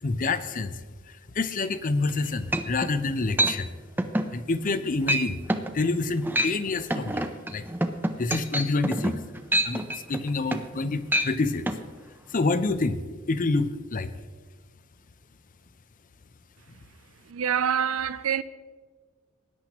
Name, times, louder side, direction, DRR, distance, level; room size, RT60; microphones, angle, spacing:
voice 1, 0.0-3.7 4.3-5.4 5.7-7.6 8.2-9.2 9.6-11.6 12.3-13.0 13.3-14.1, left 3 dB, 40° left, 0.6 m, -27 dB
sound 1, 2.1-2.2 2.5-2.9 3.4-3.6 4.0-4.3 4.7-4.8 5.1-5.2 5.5-5.7 6.2-6.6 6.9-10.8 11.1-11.3 11.7-11.8, right 1 dB, 10° right, 0.6 m, -26 dB
voice 2, 17.3-18.4, right 8 dB, 90° right, 0.5 m, -26 dB
19.5 x 10.0 x 3.0 m
head